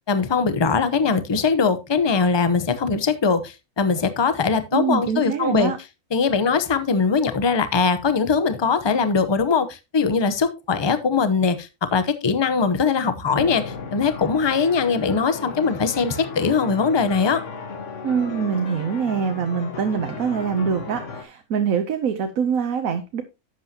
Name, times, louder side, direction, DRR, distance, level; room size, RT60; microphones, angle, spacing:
voice 1, 0.1-5.7 6.1-17.4, left 5 dB, 25° left, 0.7 m, -21 dB
voice 2, 4.7-5.8 18.0-23.2, right 6 dB, 70° right, 1.3 m, -24 dB
sound 1, 13.3-21.2, left 5 dB, 55° left, 1.4 m, -35 dB
11.0 x 8.0 x 2.8 m
omnidirectional pair, 1.6 m